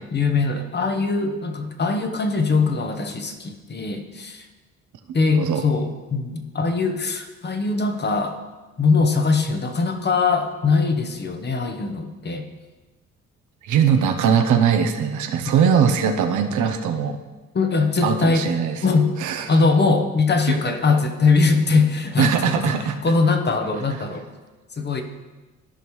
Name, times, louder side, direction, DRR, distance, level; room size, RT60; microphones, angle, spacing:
voice 1, 0.1-4.4 5.1-8.4 8.8-12.5 15.5-15.6 17.5-18.5 18.8-19.1 19.5-22.7 23.0-24.2 24.8-25.0, left 4 dB, 35° left, 6 dB, 1.0 m, -21 dB
voice 2, 13.6-17.2 18.0-18.8 19.2-19.5 20.5-20.6 22.2-23.0, right 7 dB, 80° right, 6 dB, 0.8 m, -20 dB
13.5 x 5.3 x 3.2 m, 1.2 s
cardioid pair, 90°, 30 cm